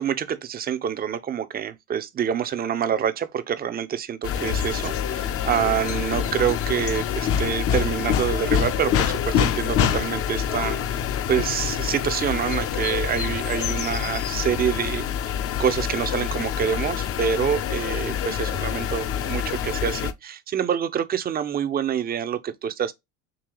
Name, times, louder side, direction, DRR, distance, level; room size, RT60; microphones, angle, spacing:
voice 1, 0.0-15.1 15.6-22.9, right 8 dB, 25° right, 0.4 m, -26 dB
sound 1, 4.2-20.1, left 9 dB, 35° left, 0.5 m, -26 dB
3.8 x 2.8 x 2.9 m
hypercardioid pair, 80°, 40 cm